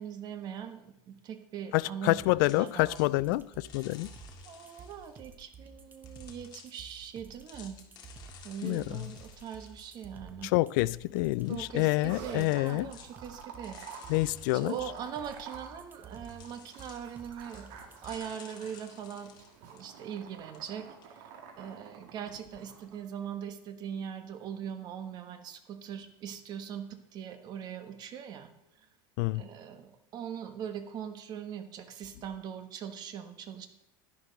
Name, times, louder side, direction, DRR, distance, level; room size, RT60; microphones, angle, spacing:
voice 1, 0.0-3.4 4.4-7.8 8.4-10.5 11.5-14.0 14.5-19.3 19.7-21.3 21.6-28.5 28.8-28.9 29.3-33.7, right 8 dB, 40° right, 1.3 m, -41 dB
voice 2, 1.7-4.1 8.6-9.1 10.4-12.9 14.1-14.7 29.2-29.4, left 20 dB, 70° left, 0.4 m, -27 dB
sound 1, 2.2-18.2, right 4 dB, 15° right, 1.0 m, -51 dB
sound 2, 2.4-5.2 6.1-6.8 7.4-10.1 10.5-10.6 10.9-11.0 11.3-12.1 12.4-12.7 12.9-13.1 13.4-15.4 16.1-17.1 17.4-17.7 17.9-20.3 20.5-20.6 21.0-21.1, left 8 dB, 40° left, 1.9 m, -54 dB
sound 3, 12.1-23.0, right 6 dB, 65° right, 2.1 m, -50 dB
11.5 x 11.0 x 4.0 m
supercardioid pair, 145°, 11 cm